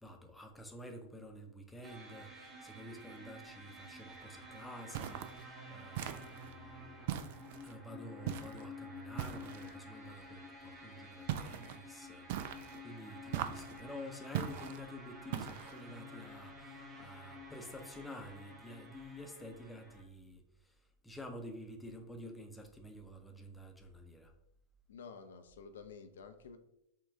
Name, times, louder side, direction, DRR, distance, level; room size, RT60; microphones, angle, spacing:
voice 1, 0.0-7.0 7.6-24.3, left 1 dB, 5° left, 3 dB, 0.6 m, -50 dB
spooky dark pad, 1.8-20.0, left 1 dB, 20° right, 0.9 m, -51 dB
sound 1, 4.9-5.4 5.9-6.5 7.1-7.7 8.2-8.6 9.2-9.7 11.3-11.8 12.3-12.8 13.3-13.8 14.3-14.8 15.3-15.8, right 10 dB, 50° right, 0.3 m, -40 dB
voice 2, 24.9-26.6, left 5 dB, 65° left, 7 dB, 0.5 m, -51 dB
5.6 x 2.3 x 3.4 m, 0.81 s
figure-of-eight pair, 90°, 0 cm